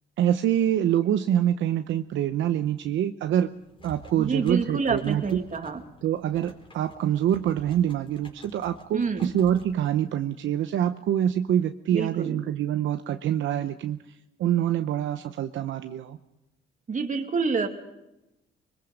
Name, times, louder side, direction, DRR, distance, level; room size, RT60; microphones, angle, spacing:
voice 1, 0.2-3.5 3.8-5.4 6.0-14.0 14.4-16.2, right 10 dB, 75° right, 8 dB, 0.8 m, -25 dB
sound 1, 3.5-10.3, left 1 dB, 25° left, 4.4 m, -49 dB
voice 2, 4.2-5.8 8.9-9.3 11.9-12.4 16.9-17.7, right 5 dB, 40° right, 6 dB, 2.3 m, -27 dB
24.0 x 21.5 x 5.2 m, 0.93 s
cardioid pair, 90°, 20 cm